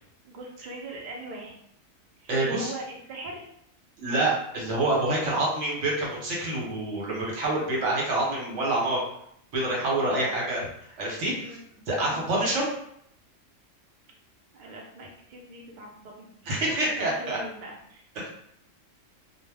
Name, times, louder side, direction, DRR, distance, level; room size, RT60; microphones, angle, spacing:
voice 1, 0.2-1.6 2.2-3.5 10.0-10.3 11.4-11.6 12.0-12.2 14.5-18.0, right 1 dB, 55° right, -1 dB, 0.5 m, -40 dB
voice 2, 2.3-2.7 4.0-9.0 9.5-10.6 11.0-11.6 11.9-12.7 16.5-17.4 18.2-18.3, right 2 dB, 70° right, -3 dB, 1.1 m, -27 dB
2.3 x 2.1 x 3.3 m, 0.71 s
omnidirectional pair, 1.3 m